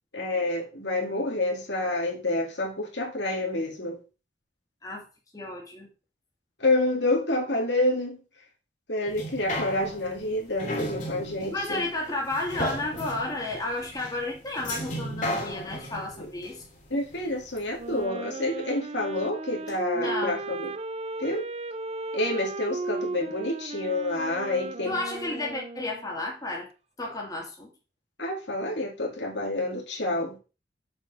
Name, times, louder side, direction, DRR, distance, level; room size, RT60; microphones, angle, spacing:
voice 1, 0.1-4.0 6.6-8.2 8.9-11.8 16.2-16.3 16.9-20.7 21.2-21.5 22.1-25.0 28.2-30.4, left 2 dB, 70° left, 1 dB, 2.3 m, -28 dB
voice 2, 5.3-5.9 11.5-16.6 19.9-20.4 24.9-26.7 27.0-27.7, left 2 dB, 20° left, -1 dB, 2.3 m, -32 dB
sound 1, 9.1-17.6 18.0-18.1, left 1 dB, 45° left, 2.5 m, -35 dB
Wind instrument woodwind instrument, 17.7-26.1, right 3 dB, 35° right, 0.6 m, -35 dB
7.1 x 5.0 x 5.4 m, 0.32 s
head